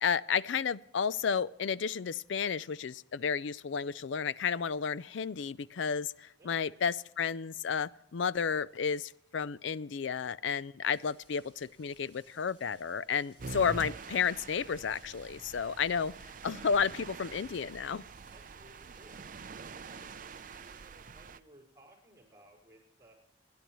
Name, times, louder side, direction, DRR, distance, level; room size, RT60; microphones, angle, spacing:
voice 1, 0.0-16.1 16.4-18.0, left 6 dB, 70° left, 19 dB, 0.4 m, -32 dB
sound 1, 10.8-20.9, equal, 30° left, 5.0 m, -64 dB
sound 2, 13.4-21.4, right 4 dB, 45° right, 0.5 m, -46 dB
voice 2, 18.3-19.3 19.7-20.1 20.5-23.1, right 1 dB, 15° right, 0 dB, 4.7 m, -59 dB
29.5 x 10.5 x 3.1 m, 0.82 s
head